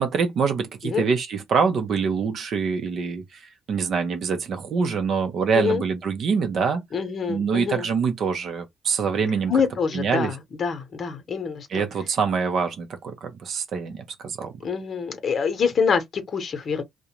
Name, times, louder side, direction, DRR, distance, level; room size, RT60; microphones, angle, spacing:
voice 1, 0.0-6.8 7.3-9.5 9.9-10.3 11.7-14.5, right 5 dB, 65° right, 0.5 m, -25 dB
voice 2, 6.9-7.9 9.5-11.8 14.6-16.8, left 6 dB, 50° left, 0.8 m, -25 dB
2.4 x 2.1 x 2.9 m
cardioid pair, 90°, 0 cm